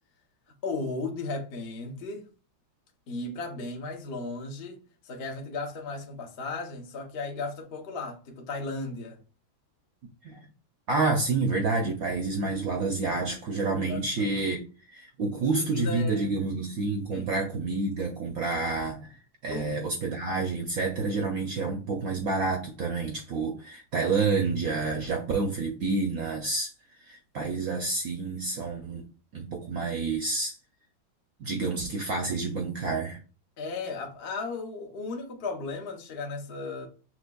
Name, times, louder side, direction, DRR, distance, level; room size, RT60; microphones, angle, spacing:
voice 1, 0.6-2.3 3.1-9.2 13.9-14.4 15.2-16.3 17.1-17.3 19.5-19.8 33.6-36.9, left 3 dB, 70° left, 0.5 m, -35 dB
voice 2, 10.9-14.6 14.9-19.1 19.4-26.7 27.0-29.0 29.3-30.5 31.4-33.2, right 3 dB, 70° right, 0.8 m, -29 dB
6.0 x 3.0 x 2.3 m
omnidirectional pair, 2.2 m